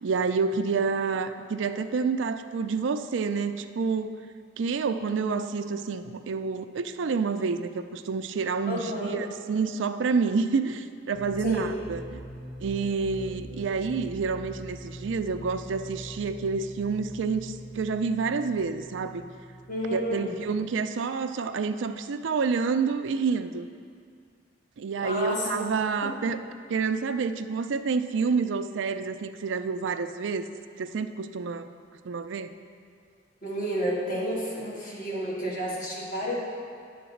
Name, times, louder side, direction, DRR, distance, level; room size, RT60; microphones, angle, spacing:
voice 1, 0.0-4.2 4.6-12.2 12.6-19.3 19.9-23.7 24.8-26.4 26.7-30.5 30.8-31.7 32.0-32.5, right 5 dB, 80° right, 9 dB, 0.4 m, -28 dB
voice 2, 8.7-9.2 11.4-11.7 19.7-20.3 25.0-25.6 26.0-26.1 33.4-36.4, equal, 45° left, -5 dB, 1.6 m, -30 dB
sound 1, 11.1-20.8, equal, 70° left, 1.8 m, -43 dB
10.0 x 4.0 x 7.0 m, 2.2 s
head